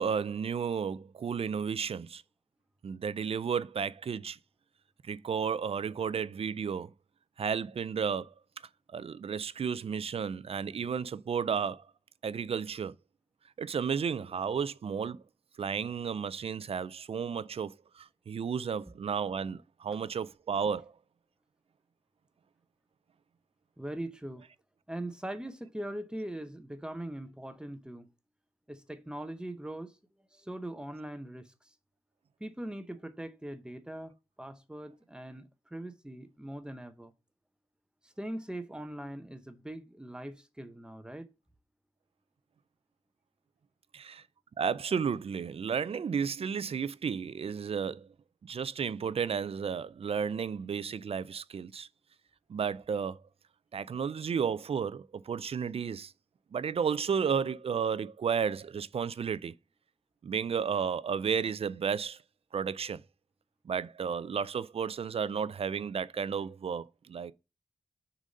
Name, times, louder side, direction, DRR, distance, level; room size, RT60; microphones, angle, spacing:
voice 1, 0.0-2.2 2.8-4.4 5.0-6.9 7.4-8.3 8.9-11.9 12.2-13.0 13.6-15.2 15.6-20.9 43.9-44.2 44.6-48.1 48.4-51.9 52.5-53.2 53.7-56.1 56.5-59.5 60.2-62.2 62.5-63.0 63.6-67.3, right 6 dB, 55° right, 0.4 m, -33 dB
voice 2, 23.8-24.4 24.9-28.1 28.7-29.9 30.3-31.5 32.4-37.1 38.0-41.3, right 1 dB, 5° right, 0.7 m, -41 dB
6.3 x 4.0 x 5.2 m
wide cardioid pair, 110°, 12 cm